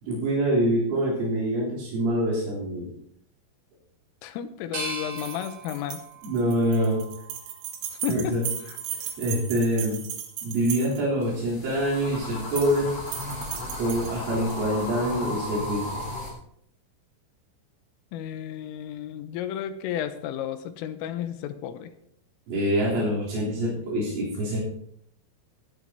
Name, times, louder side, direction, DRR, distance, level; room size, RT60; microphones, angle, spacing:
voice 1, 0.0-2.9 6.2-7.0 8.1-8.4 9.2-10.0 10.4-12.9 13.8-16.0 22.5-24.7, right 1 dB, 70° right, -7 dB, 6.0 m, -25 dB
voice 2, 4.2-6.0 8.0-8.3 18.1-21.9, left 10 dB, 85° left, 9 dB, 3.4 m, -32 dB
sound 1, 4.7-7.7 8.2-9.0, right 2 dB, 35° right, 5.4 m, -40 dB
sound 2, 5.1-11.2 12.3-12.8 13.1-14.6, right 9 dB, 90° right, 4.4 m, -36 dB
sound 3, 11.2-16.3, left 1 dB, 35° left, 4.0 m, -35 dB
19.0 x 11.5 x 2.9 m, 0.71 s
omnidirectional pair, 6.0 m